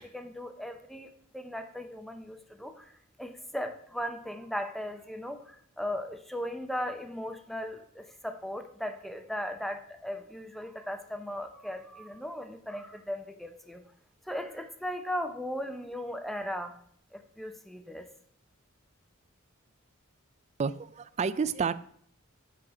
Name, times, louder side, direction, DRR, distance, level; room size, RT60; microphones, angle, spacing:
voice 1, 0.0-2.9 3.2-13.8 14.3-16.8 17.1-18.1, equal, ahead, 7 dB, 0.6 m, -37 dB
voice 2, 20.6-21.7, right 5 dB, 35° right, 16 dB, 0.3 m, -30 dB
8.5 x 4.7 x 4.8 m, 0.65 s
head